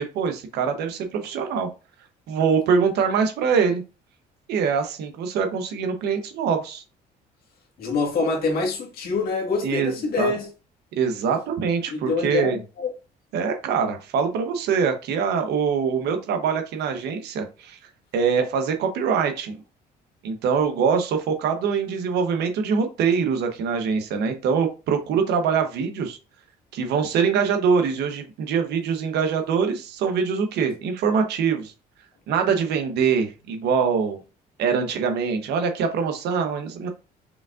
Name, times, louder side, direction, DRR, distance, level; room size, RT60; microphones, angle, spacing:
voice 1, 0.0-1.7 2.3-3.8 4.5-6.8 9.6-10.3 11.0-12.6 13.3-17.8 18.1-19.5 20.2-26.2 26.7-31.7 32.3-34.2 34.6-36.9, right 6 dB, 80° right, 0.9 m, -23 dB
voice 2, 7.8-10.5 11.9-12.9, left 4 dB, 65° left, 1.7 m, -25 dB
5.1 x 3.5 x 2.5 m
cardioid pair, 110°, 17 cm